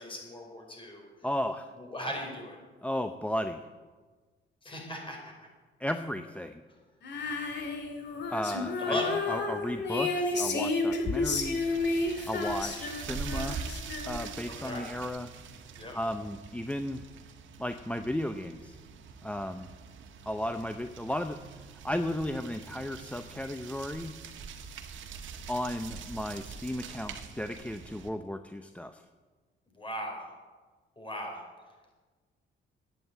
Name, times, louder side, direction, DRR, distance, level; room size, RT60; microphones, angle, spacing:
voice 1, 0.0-1.1 1.8-2.6 4.6-5.3 8.8-9.1 14.5-14.9 15.8-15.9 29.7-30.3 31.0-31.4, equal, 25° left, 0 dB, 4.9 m, -37 dB
voice 2, 1.2-1.7 2.8-3.7 5.8-6.6 8.3-9.0 9.3-12.0 12.3-13.6 14.1-15.3 15.9-17.0 17.6-18.8 19.2-19.7 20.3-21.4 21.8-24.1 25.5-29.0, left 1 dB, 5° left, 8 dB, 0.7 m, -34 dB
Female singing, 7.0-14.5, left 3 dB, 60° left, 2.4 m, -31 dB
sound 1, 11.2-28.1, right 6 dB, 75° right, 1.5 m, -44 dB
11.0 x 9.3 x 8.2 m, 1.4 s
cardioid pair, 90°, 20 cm